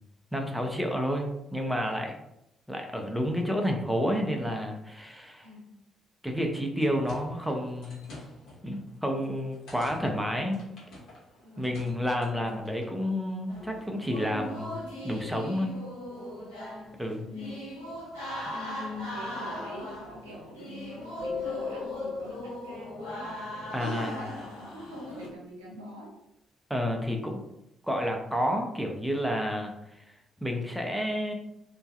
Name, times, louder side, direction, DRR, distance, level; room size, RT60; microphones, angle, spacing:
voice 1, 0.3-2.2 2.7-5.5 6.2-8.0 8.6-10.6 11.6-14.7 15.0-15.7 17.0-17.3 23.7-24.2 26.7-27.4 27.9-29.7 30.4-31.3, equal, 5° right, 2 dB, 0.5 m, -30 dB
voice 2, 5.4-5.8 11.4-11.9 16.7-17.6 18.4-20.8 21.2-26.2, left 1 dB, 80° right, -4 dB, 0.6 m, -44 dB
sound 1, 6.7-13.0, left 1 dB, 60° left, 0.9 m, -50 dB
sound 2, 13.5-25.3, left 1 dB, 80° left, 0.6 m, -39 dB
sound 3, 21.2-23.8, left 7 dB, 35° right, 0.8 m, -39 dB
2.5 x 2.2 x 2.5 m, 0.83 s
figure-of-eight pair, 40°, 0 cm